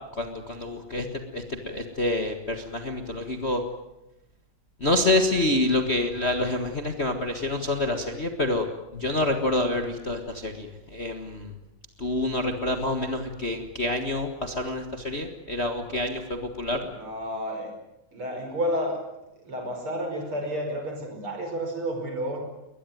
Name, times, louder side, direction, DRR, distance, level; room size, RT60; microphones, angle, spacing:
voice 1, 0.2-1.1 1.3-3.6 4.8-8.7 8.9-11.5 12.0-16.8, left 2 dB, 75° left, 5 dB, 0.6 m, -27 dB
voice 2, 17.0-17.7 18.1-19.0 19.5-22.4, equal, 35° right, 4 dB, 5.7 m, -30 dB
22.0 x 20.0 x 9.3 m, 0.95 s
omnidirectional pair, 4.1 m